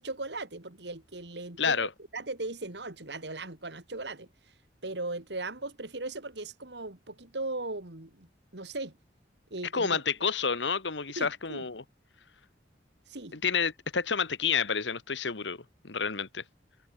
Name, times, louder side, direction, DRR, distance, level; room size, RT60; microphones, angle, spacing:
voice 1, 0.0-1.9 2.1-4.3 4.8-9.0 9.5-10.0 11.2-11.7 13.1-13.4, right 2 dB, 70° right, 2.8 m, -38 dB
voice 2, 1.6-1.9 9.7-11.8 13.3-16.4, left 5 dB, 90° left, 1.7 m, -29 dB
head